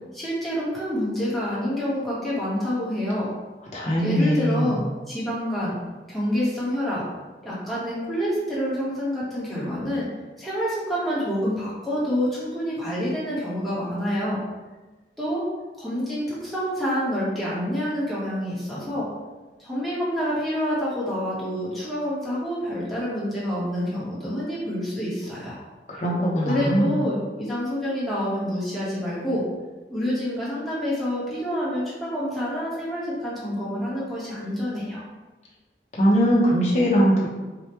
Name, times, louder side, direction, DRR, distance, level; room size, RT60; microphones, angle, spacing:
voice 1, 0.1-3.3 4.0-4.8 5.1-5.8 6.1-7.0 7.4-10.1 10.4-14.4 15.2-15.4 15.8-19.1 19.6-25.6 26.5-29.4 29.9-35.0, equal, ahead, -9 dB, 1.1 m, -27 dB
voice 2, 3.7-4.8 25.9-27.0 36.0-37.3, equal, 40° left, -6 dB, 1.0 m, -21 dB
4.9 x 2.3 x 3.0 m, 1.2 s
head